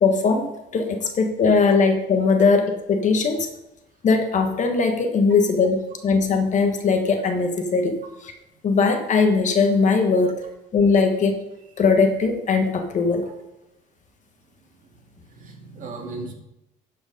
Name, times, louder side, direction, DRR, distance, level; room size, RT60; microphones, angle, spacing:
voice 1, 0.0-0.5 0.7-3.5 4.0-8.0 8.2-8.3 8.6-10.3 10.7-11.4 11.8-13.2, left 4 dB, 45° left, 5 dB, 1.4 m, -20 dB
voice 2, 15.1-16.3, right 3 dB, 50° right, 1 dB, 2.2 m, -37 dB
11.5 x 5.0 x 5.3 m, 0.91 s
cardioid pair, 110°, 17 cm